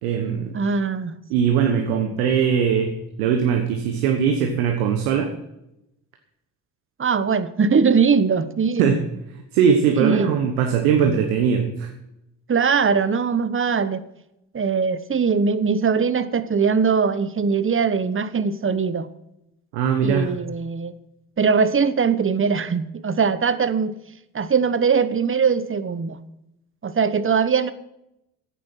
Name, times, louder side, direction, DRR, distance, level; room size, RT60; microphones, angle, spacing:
voice 1, 0.0-0.5 1.3-2.9 3.2-5.3 8.8-9.0 9.5-11.9 19.7-20.4, right 7 dB, 80° right, 5 dB, 1.3 m, -20 dB
voice 2, 0.5-1.2 7.0-8.9 10.0-10.3 12.5-14.0 14.5-19.1 20.0-20.9 21.4-24.0 24.3-26.2 26.8-27.7, right 5 dB, 30° right, 14 dB, 1.1 m, -21 dB
10.0 x 8.9 x 7.7 m, 0.86 s
hypercardioid pair, 45°, 43 cm